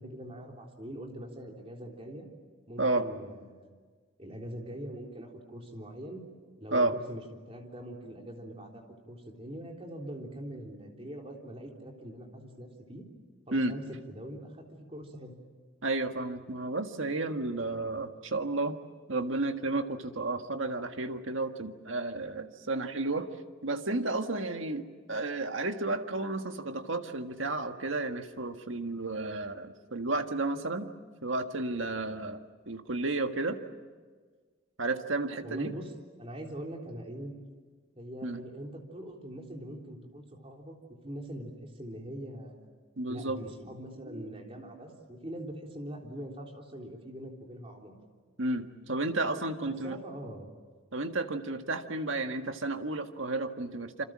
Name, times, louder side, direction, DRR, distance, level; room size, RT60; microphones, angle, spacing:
voice 1, 0.0-2.3 2.7-3.7 4.2-6.2 6.6-7.2 7.5-8.8 9.1-13.0 13.5-13.8 14.1-15.3 35.4-35.9 36.2-37.3 38.0-40.8 41.0-42.7 43.1-48.0 49.7-50.5, right 1 dB, 30° right, 1 dB, 3.7 m, -43 dB
voice 2, 15.8-18.8 19.1-23.3 23.6-30.9 31.2-33.6 34.8-35.7 38.2-38.4 43.0-43.4 44.1-44.2 48.4-50.0 50.9-54.0, right 2 dB, 75° right, 6 dB, 1.7 m, -32 dB
27.5 x 26.0 x 7.5 m, 1.5 s
head